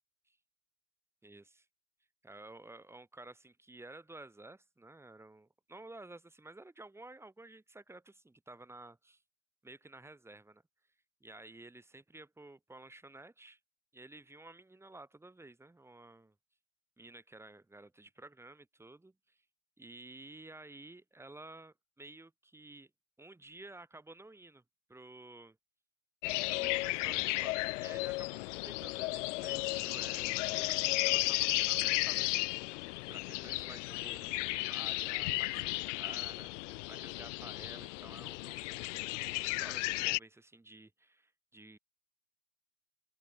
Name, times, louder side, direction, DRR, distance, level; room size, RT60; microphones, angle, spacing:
voice 1, 1.2-1.7 2.2-9.2 9.6-10.6 11.2-13.6 13.9-16.3 17.0-19.4 19.8-22.9 23.2-24.6 24.9-25.6 26.5-32.6 33.1-41.8, right 2 dB, 5° right, 7.0 m, -53 dB
sound 1, 26.2-40.2, left 23 dB, 50° left, 1.1 m, -34 dB
open air
hypercardioid pair, 130°, 45 cm